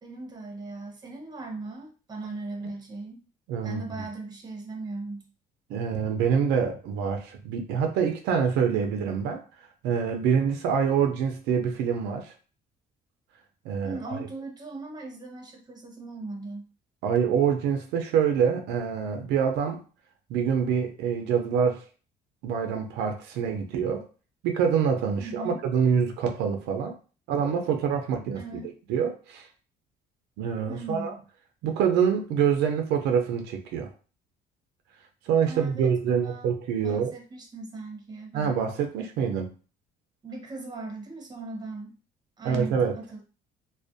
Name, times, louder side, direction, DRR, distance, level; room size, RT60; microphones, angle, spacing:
voice 1, 0.0-3.3 3.6-5.3 13.8-16.7 25.2-25.6 28.3-28.7 30.7-31.2 35.5-36.5 36.8-38.6 40.2-42.0 42.4-43.2, right 2 dB, 25° right, 2 dB, 0.7 m, -38 dB
voice 2, 3.5-4.0 5.7-9.4 9.8-12.3 13.6-14.3 17.0-19.8 20.3-21.8 22.4-24.1 24.4-27.0 27.3-28.6 28.9-29.5 30.4-31.2 31.6-33.9 35.3-37.2 38.3-39.5 42.4-43.0, right 7 dB, 85° right, 4 dB, 0.4 m, -26 dB
2.4 x 2.1 x 2.5 m, 0.36 s
cardioid pair, 110°, 17 cm